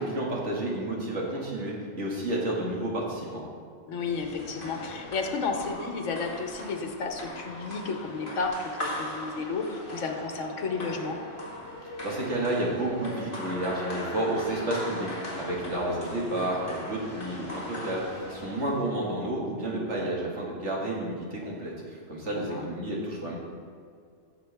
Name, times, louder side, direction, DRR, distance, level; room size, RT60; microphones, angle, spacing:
voice 1, 0.0-3.4 12.0-23.4, right 1 dB, 65° right, -4 dB, 2.3 m, -31 dB
voice 2, 3.9-11.2 22.3-22.7, left 4 dB, 75° left, 4 dB, 1.3 m, -32 dB
sound 1, 4.0-18.9, left 1 dB, 45° left, 2.2 m, -39 dB
14.5 x 6.6 x 3.5 m, 2.2 s
omnidirectional pair, 1.3 m